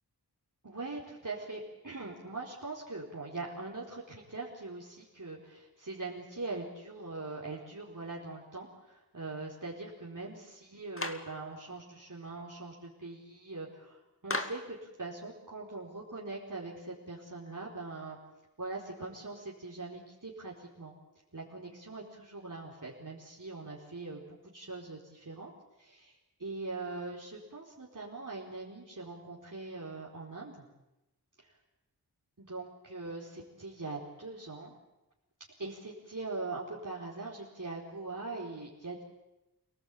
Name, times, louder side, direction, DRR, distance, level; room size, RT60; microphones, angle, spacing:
voice 1, 0.6-18.2 18.6-20.9 21.3-24.2 24.5-25.5 25.8-30.6 31.4-31.5 32.4-34.8 35.6-39.0, right 3 dB, 50° right, -4 dB, 4.5 m, -42 dB
Clapping, 11.0-11.3 14.3-14.7, left 2 dB, 30° left, 2.3 m, -35 dB
29.5 x 18.0 x 8.6 m, 0.96 s
wide cardioid pair, 60°, 40 cm